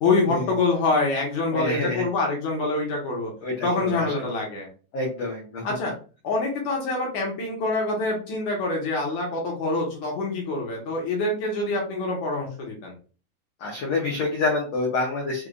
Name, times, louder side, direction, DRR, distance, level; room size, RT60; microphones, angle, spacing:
voice 1, 0.0-3.3 3.6-4.7 5.6-5.9 6.2-12.9, left 3 dB, 60° left, -1 dB, 2.1 m, -25 dB
voice 2, 1.5-2.1 3.4-4.1 4.9-5.6 13.6-15.5, left 3 dB, 85° left, -2 dB, 1.4 m, -27 dB
6.5 x 2.5 x 2.4 m, 0.36 s
omnidirectional pair, 4.6 m